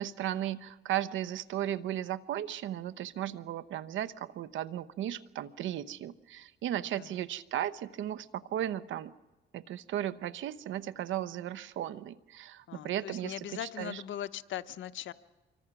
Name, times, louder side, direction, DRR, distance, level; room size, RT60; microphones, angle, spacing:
voice 1, 0.0-9.1 9.5-14.0, right 11 dB, 80° right, 16 dB, 0.9 m, -35 dB
voice 2, 12.7-15.1, left 11 dB, 70° left, 13 dB, 0.9 m, -39 dB
26.0 x 23.5 x 6.0 m, 1.1 s
cardioid pair, 90°, 20 cm